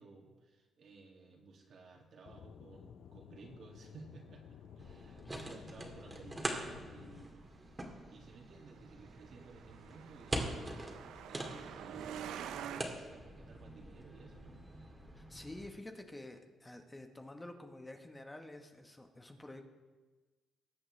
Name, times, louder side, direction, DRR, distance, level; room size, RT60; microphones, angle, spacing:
voice 1, 0.0-7.5 8.1-10.5 11.3-14.6, right 4 dB, 60° right, 0 dB, 2.2 m, -56 dB
Aircraft / Engine, 2.3-7.3, left 8 dB, 70° left, 0.4 m, -54 dB
sound 1, 4.8-15.7, right 1 dB, 20° right, 1.9 m, -44 dB
Truck, 8.7-12.8, right 9 dB, 85° right, 0.5 m, -47 dB
voice 2, 15.1-19.6, left 1 dB, 15° left, 4 dB, 1.1 m, -49 dB
20.5 x 7.9 x 3.3 m, 1.3 s
cardioid pair, 90°, 0 cm